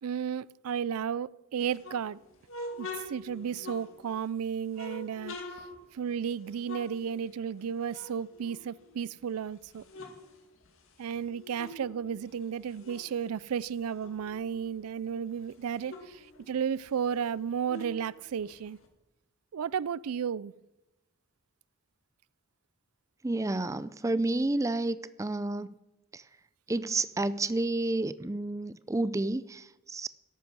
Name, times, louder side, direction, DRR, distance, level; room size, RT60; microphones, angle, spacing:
voice 1, 0.0-2.2 2.8-5.4 5.9-9.8 11.0-18.8 19.5-20.5, right 7 dB, 85° right, 0.4 m, -33 dB
sound 1, 1.6-4.3 4.7-7.6 7.9-9.2 9.6-11.9 12.2-14.7 15.1-15.2 15.4-18.9, left 2 dB, 65° left, 2.3 m, -45 dB
voice 2, 23.2-25.7 26.1-26.2 26.7-30.1, right 2 dB, 15° right, 0.4 m, -30 dB
13.5 x 11.0 x 6.3 m
head